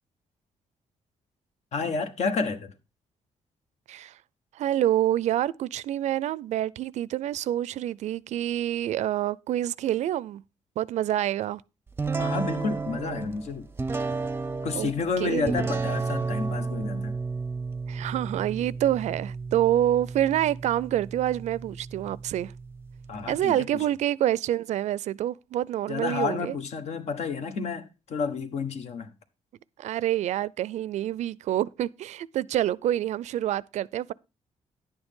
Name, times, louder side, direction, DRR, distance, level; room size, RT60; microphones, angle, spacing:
voice 1, 1.7-2.7 12.2-13.7 14.6-17.1 23.1-23.7 25.9-29.1, left 5 dB, 70° left, 1.3 m, -30 dB
voice 2, 4.5-10.4 10.8-11.6 14.7-14.9 15.2-15.7 17.9-22.5 23.3-26.6 29.8-34.1, right 12 dB, 80° right, 0.4 m, -27 dB
sound 1, 12.0-23.4, right 4 dB, 20° right, 0.6 m, -33 dB
10.5 x 8.9 x 3.7 m
cardioid pair, 110°, 12 cm